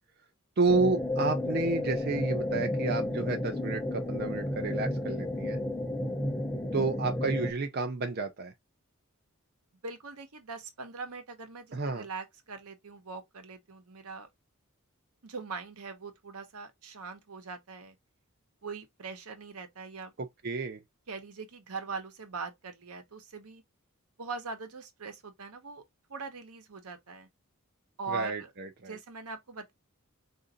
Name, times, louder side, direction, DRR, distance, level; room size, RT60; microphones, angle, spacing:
voice 1, 0.6-5.6 6.7-8.5 11.7-12.1 20.2-20.8 28.1-29.0, right 3 dB, 45° right, 0.5 m, -31 dB
sound 1, 0.7-7.5, left 1 dB, 5° left, 0.7 m, -32 dB
voice 2, 9.8-14.3 15.2-18.0 18.6-20.1 21.1-23.6 24.2-25.8 26.1-27.3 28.0-28.5 28.9-29.7, right 4 dB, 85° right, 1.0 m, -41 dB
3.9 x 2.6 x 3.8 m
head